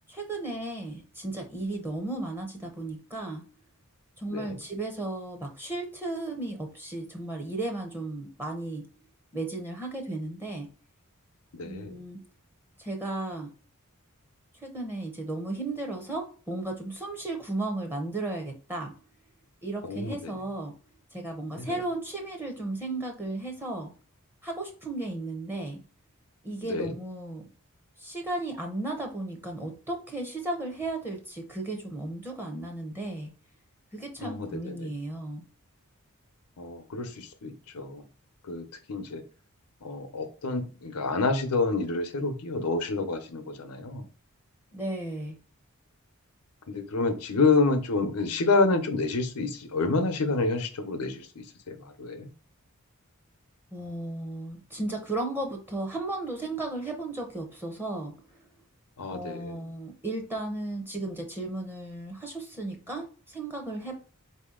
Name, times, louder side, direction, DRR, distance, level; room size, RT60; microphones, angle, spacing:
voice 1, 0.1-3.4 4.2-8.8 9.3-10.7 11.6-12.2 12.8-13.5 14.6-18.9 19.6-20.7 21.1-23.9 24.4-25.8 26.4-27.5 28.0-33.3 33.9-35.4 44.7-45.4 53.7-58.4 59.1-64.0, right 2 dB, 10° right, 3 dB, 0.7 m, -35 dB
voice 2, 11.6-11.9 19.8-20.3 21.6-21.8 26.6-26.9 34.2-34.9 36.6-38.0 38.5-39.2 39.8-44.1 46.7-51.3 51.7-52.3 59.0-59.6, left 3 dB, 85° left, 8 dB, 0.7 m, -28 dB
4.3 x 2.8 x 3.6 m, 0.38 s
head